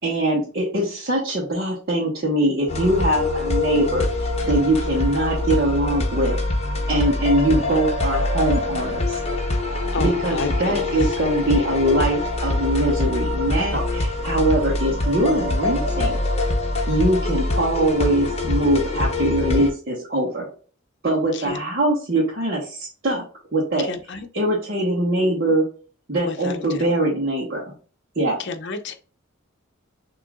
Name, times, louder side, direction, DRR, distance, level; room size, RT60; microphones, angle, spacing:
voice 1, 0.0-6.4 6.9-9.2 10.0-16.2 16.9-20.5 21.0-23.2 23.5-23.9 24.3-25.7 26.1-27.7 28.1-28.4, right 1 dB, 50° right, -6 dB, 1.6 m, -22 dB
sound 1, 2.7-19.7, left 2 dB, 30° left, 0.9 m, -24 dB
voice 2, 9.9-11.0 21.3-21.6 23.8-24.3 26.2-26.9 28.4-28.9, left 3 dB, 60° left, 7 dB, 0.7 m, -30 dB
6.6 x 3.0 x 2.5 m, 0.39 s
head